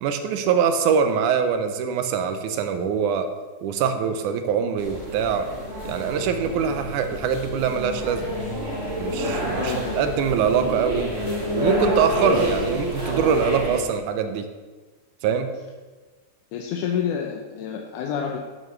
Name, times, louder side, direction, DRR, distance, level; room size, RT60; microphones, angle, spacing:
voice 1, 0.0-3.3 3.6-5.5 5.8-8.4 9.0-11.1 11.5-14.5 15.2-15.5, right 7 dB, 80° right, 8 dB, 2.2 m, -23 dB
sound 1, 4.8-13.8, equal, 25° right, 2.7 m, -28 dB
voice 2, 9.6-10.0 16.5-18.4, left 7 dB, 85° left, 1 dB, 2.3 m, -28 dB
13.0 x 8.8 x 3.2 m, 1.3 s
omnidirectional pair, 3.6 m